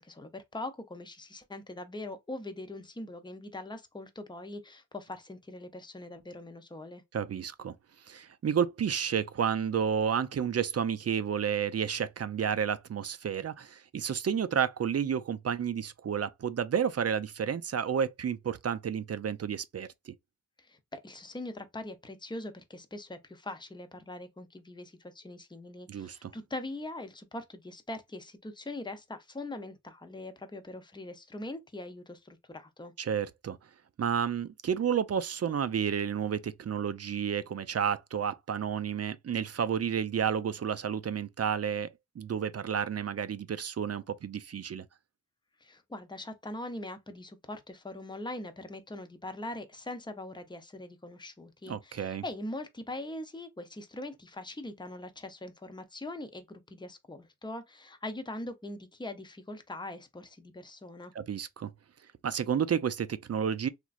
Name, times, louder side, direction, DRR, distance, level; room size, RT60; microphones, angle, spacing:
voice 1, 0.0-7.0 20.6-32.9 45.6-61.1, left 2 dB, 15° left, 0.6 m, -42 dB
voice 2, 7.1-7.7 8.1-20.1 25.9-26.3 33.0-33.6 34.0-41.9 42.2-44.8 51.7-52.2 61.2-61.7 62.2-63.7, right 7 dB, 45° right, 0.4 m, -31 dB
3.0 x 2.5 x 2.4 m
cardioid pair, 50°, 34 cm